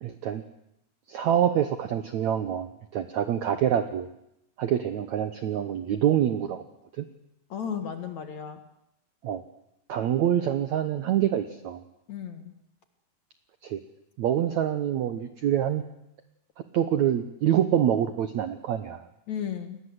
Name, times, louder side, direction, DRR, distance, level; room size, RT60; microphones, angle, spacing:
voice 1, 0.0-0.4 1.1-4.1 4.6-6.6 7.0-7.1 9.2-9.4 9.9-11.8 13.6-13.8 14.2-15.8 16.7-19.1, right 10 dB, 70° right, 10 dB, 1.7 m, -26 dB
voice 2, 7.5-8.6 12.1-12.5 19.3-19.8, left 8 dB, 55° left, 8 dB, 2.5 m, -34 dB
29.0 x 20.5 x 8.1 m, 0.79 s
omnidirectional pair, 4.7 m